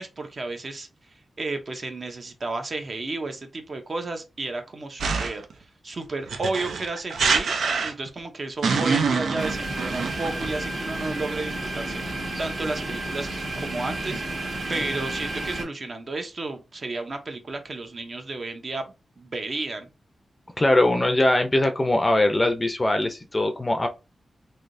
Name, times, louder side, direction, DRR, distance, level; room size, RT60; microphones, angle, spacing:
voice 1, 0.0-5.4 5.8-7.5 7.8-13.3 13.6-18.8 19.2-19.9, right 3 dB, 45° right, 0.7 m, -32 dB
sound 1, 5.0-5.5 6.3-8.2 8.6-10.5, right 5 dB, 85° right, 0.4 m, -25 dB
sound 2, 9.4-15.6, right 2 dB, 65° right, 1.3 m, -31 dB
voice 2, 20.6-23.9, left 1 dB, 20° left, 0.5 m, -21 dB
3.3 x 2.7 x 2.5 m
wide cardioid pair, 125°, 0 cm